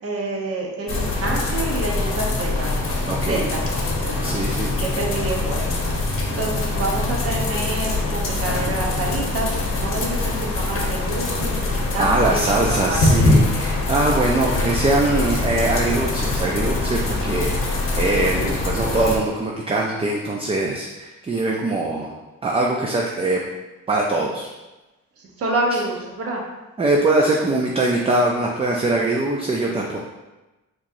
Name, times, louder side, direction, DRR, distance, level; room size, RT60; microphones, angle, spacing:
voice 1, 0.0-2.8 3.3-5.7 6.4-11.5 11.9-13.1 25.2-26.4, right 2 dB, 50° right, -1 dB, 0.9 m, -28 dB
sound 1, 0.9-19.2, left 2 dB, 45° left, 0.9 m, -23 dB
voice 2, 3.1-3.5 4.2-4.7 12.0-22.1 22.4-23.4 23.9-24.5 26.8-30.0, right 2 dB, 20° right, -1 dB, 0.4 m, -22 dB
4.4 x 3.0 x 2.6 m, 1.1 s
cardioid pair, 90°, 30 cm